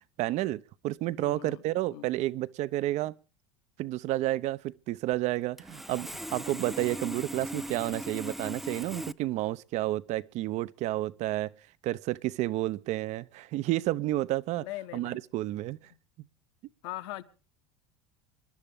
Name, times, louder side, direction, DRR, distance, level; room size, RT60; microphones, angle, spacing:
voice 1, 0.2-3.2 3.8-11.5 11.8-14.7 14.9-15.8, right 16 dB, 50° right, 0.8 m, -31 dB
voice 2, 1.2-1.6 1.9-2.1 14.6-15.2 16.8-17.2, left 16 dB, 70° left, 1.5 m, -40 dB
Sawing, 5.6-9.1, equal, ahead, 0.7 m, -39 dB
27.0 x 12.0 x 3.6 m
hypercardioid pair, 80°, 15 cm